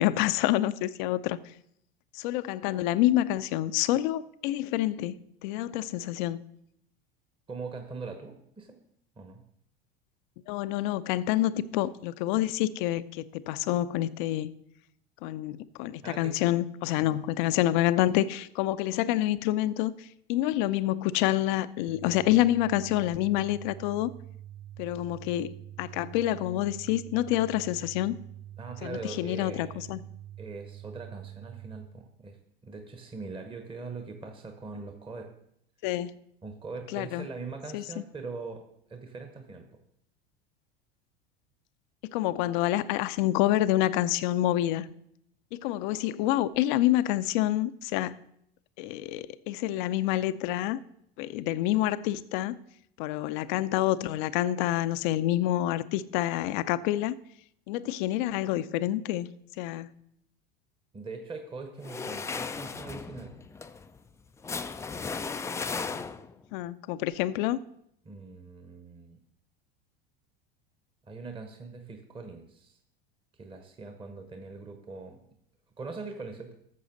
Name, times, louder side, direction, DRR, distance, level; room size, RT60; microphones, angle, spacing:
voice 1, 0.0-1.4 2.1-6.4 10.5-14.5 15.2-24.1 24.8-28.2 28.8-30.0 35.8-36.1 36.9-37.3 37.7-37.8 42.1-44.9 45.5-48.2 48.8-50.8 51.2-52.6 53.0-57.2 57.7-59.3 59.6-59.9 66.5-67.6, left 14 dB, 55° left, 0.6 m, -27 dB
voice 2, 7.5-8.8 9.2-9.4 16.0-16.4 17.0-17.2 28.6-29.8 30.4-32.4 32.6-35.3 36.4-38.6 38.9-39.8 60.9-63.4 65.7-66.0 68.0-69.2 71.0-72.8 73.4-75.2 75.8-76.5, right 4 dB, 15° right, 1.1 m, -42 dB
sound 1, 21.9-31.9, right 12 dB, 35° right, 0.7 m, -45 dB
sound 2, 61.8-66.4, left 4 dB, 10° left, 0.4 m, -36 dB
14.0 x 7.0 x 3.9 m
hypercardioid pair, 80°, 29 cm